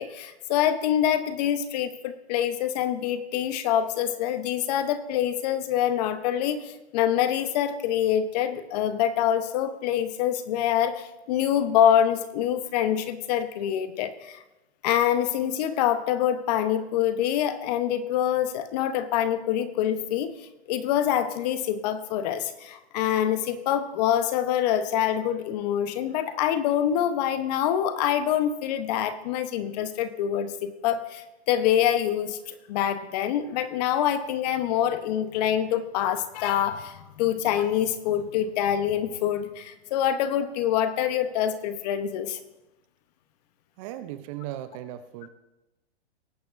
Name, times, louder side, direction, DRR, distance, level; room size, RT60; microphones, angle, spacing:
voice 1, 0.0-14.4 14.8-42.4, left 10 dB, 40° left, 11 dB, 0.9 m, -25 dB
voice 2, 43.8-45.3, right 12 dB, 30° right, 11 dB, 0.6 m, -37 dB
19.0 x 9.1 x 2.5 m, 0.98 s
hypercardioid pair, 130°, 33 cm